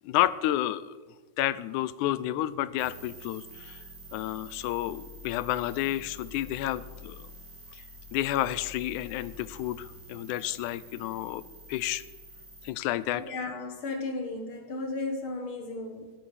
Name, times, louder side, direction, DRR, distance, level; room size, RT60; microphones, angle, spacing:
voice 1, 0.0-1.0 1.4-3.8 4.1-7.3 7.7-7.8 8.1-11.4 11.7-12.0 12.6-13.2, left 14 dB, 85° left, 17 dB, 2.0 m, -30 dB
sound 1, 2.8-12.7, left 1 dB, 10° right, 3.3 m, -47 dB
voice 2, 13.1-16.1, left 3 dB, 50° left, 6 dB, 2.0 m, -35 dB
17.0 x 10.0 x 4.9 m, 1.3 s
omnidirectional pair, 3.4 m